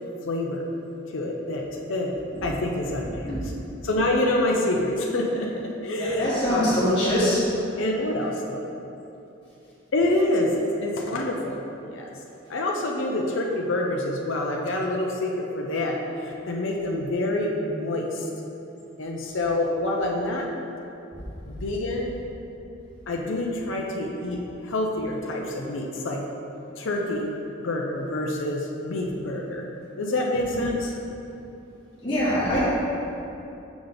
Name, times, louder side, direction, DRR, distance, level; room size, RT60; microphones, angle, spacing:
voice 1, 0.2-0.6 1.1-2.2 2.4-3.5 3.8-7.2 7.8-8.6 9.9-12.1 12.5-18.3 19.0-20.5 21.5-22.2 23.1-26.2 26.8-27.4 27.6-29.7 30.0-30.9 32.5-32.6, left 1 dB, 65° left, -1 dB, 0.6 m, -27 dB
voice 2, 6.0-7.4 30.5-30.7 32.0-32.6, equal, 25° left, -12 dB, 1.5 m, -23 dB
5.9 x 5.0 x 4.0 m, 2.9 s
head